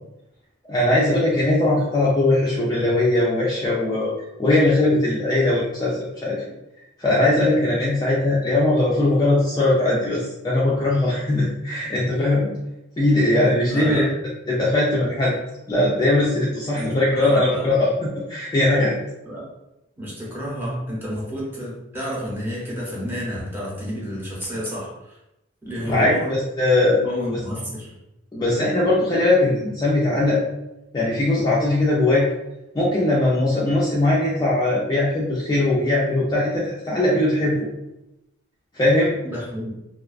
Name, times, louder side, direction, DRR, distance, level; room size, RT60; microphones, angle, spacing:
voice 1, 0.7-4.1 4.4-6.4 7.0-12.5 13.0-14.1 14.5-15.4 15.7-17.9 18.1-19.0 25.8-27.0 28.3-30.4 30.9-32.3 32.7-37.7 38.7-39.2, left 2 dB, 20° left, -6 dB, 0.3 m, -20 dB
voice 2, 13.7-14.1 16.8-17.7 19.2-19.5 20.0-25.2 25.6-26.4 27.0-27.9 39.2-39.7, equal, 10° right, -6 dB, 0.7 m, -30 dB
2.3 x 2.2 x 2.3 m, 0.91 s
head